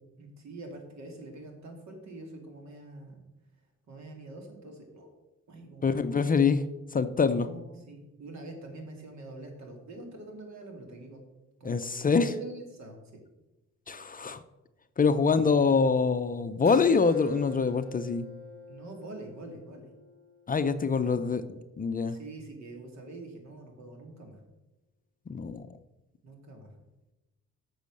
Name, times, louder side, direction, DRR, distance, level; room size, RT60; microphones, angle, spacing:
voice 1, 0.2-3.2 3.9-5.1 5.5-6.0 7.3-11.2 11.6-13.2 18.7-19.8 21.0-21.4 22.1-24.4 26.2-26.7, right 2 dB, 65° right, 3 dB, 2.7 m, -45 dB
voice 2, 5.8-6.6 6.9-7.5 11.6-12.3 13.9-14.4 15.0-18.3 20.5-21.4 21.8-22.2 25.3-25.6, left 5 dB, 30° left, 10 dB, 0.5 m, -25 dB
Keyboard (musical), 16.7-21.8, left 1 dB, 35° right, 1.6 m, -48 dB
8.2 x 6.3 x 6.5 m, 1.0 s
cardioid pair, 90°, 30 cm